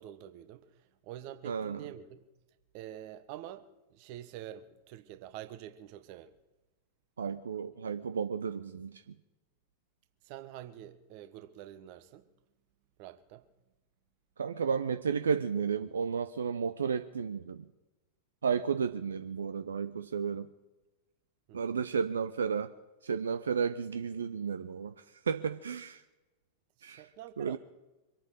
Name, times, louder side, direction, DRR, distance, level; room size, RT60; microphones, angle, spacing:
voice 1, 0.0-2.2 2.7-6.3 10.2-12.3 13.0-13.4 21.5-21.8 26.8-27.6, right 12 dB, 45° right, 1.1 m, -47 dB
voice 2, 1.4-1.8 7.2-9.0 14.4-17.6 18.4-20.5 21.5-22.7 23.0-26.0 26.8-27.1 27.4-27.6, right 6 dB, 70° right, 0.7 m, -33 dB
25.0 x 9.0 x 6.5 m
figure-of-eight pair, 90°, 0 cm